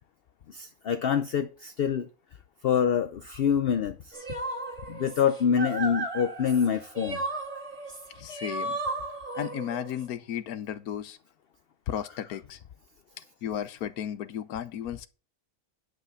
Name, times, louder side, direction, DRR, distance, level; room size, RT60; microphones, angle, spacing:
voice 1, 0.5-2.1 2.6-4.1 4.9-7.2, left 7 dB, 60° left, 0.6 m, -26 dB
sound 1, 4.1-10.0, right 2 dB, 35° right, 2.6 m, -35 dB
voice 2, 8.2-9.0 9.3-11.2 11.9-12.6 13.2-15.1, left 10 dB, 80° left, 1.2 m, -34 dB
10.5 x 5.8 x 5.6 m
omnidirectional pair, 1.6 m